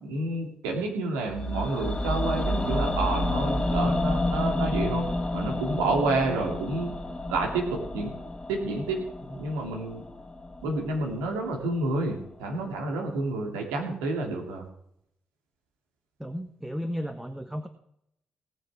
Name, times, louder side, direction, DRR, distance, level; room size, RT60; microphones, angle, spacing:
voice 1, 0.0-5.0 5.3-6.9 7.3-8.1 8.5-9.0 9.3-10.0 10.6-14.7, right 2 dB, 80° right, 1 dB, 2.7 m, -29 dB
sound 1, 1.3-11.4 11.7-11.8, left 1 dB, 25° left, 2.2 m, -30 dB
voice 2, 16.2-17.7, equal, 5° right, 7 dB, 1.3 m, -34 dB
18.5 x 6.6 x 6.2 m, 0.77 s
hypercardioid pair, 40°, 4 cm